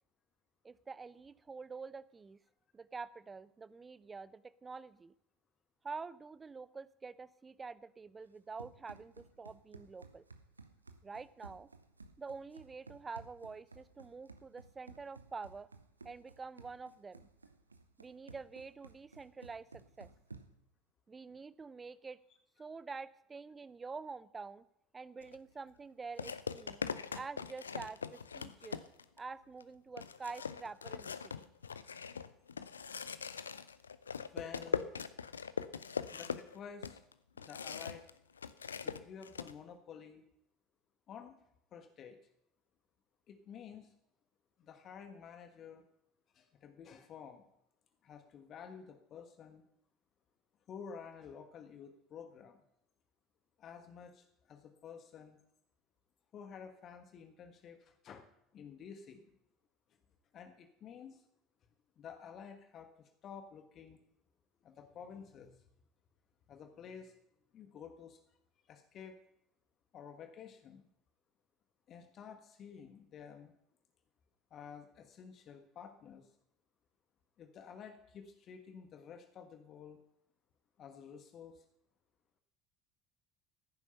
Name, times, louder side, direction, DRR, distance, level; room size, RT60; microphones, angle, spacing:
voice 1, 0.6-2.4 2.7-5.1 5.8-10.2 11.0-11.7 12.2-15.7 16.0-17.3 18.0-20.1 21.1-22.2 22.6-24.6 24.9-26.8 27.1-28.8 29.2-31.3, right 4 dB, 20° right, 17 dB, 0.6 m, -47 dB
Run, 8.2-20.7, right 3 dB, 85° right, 0.7 m, -56 dB
sound 1, 25.2-25.4 26.2-29.2 29.6-29.7 30.0-38.1 38.4-39.5, left 6 dB, 80° left, 0.5 m, -41 dB
voice 2, 34.3-34.9 36.1-37.0 37.4-38.0 38.8-40.2 41.1-41.3 41.7-42.2 43.3-43.9 44.6-45.8 46.3-47.5 48.0-49.6 50.7-52.6 53.6-55.4 56.3-58.3 58.5-59.3 60.3-61.3 62.0-64.0 64.6-65.6 66.5-67.1 67.5-68.2 68.7-69.2 69.9-70.8 71.9-73.5 74.5-76.3 77.4-80.0 80.8-81.6, left 7 dB, 40° left, 7 dB, 1.4 m, -51 dB
16.0 x 9.7 x 5.8 m, 0.77 s
figure-of-eight pair, 65°, 0 cm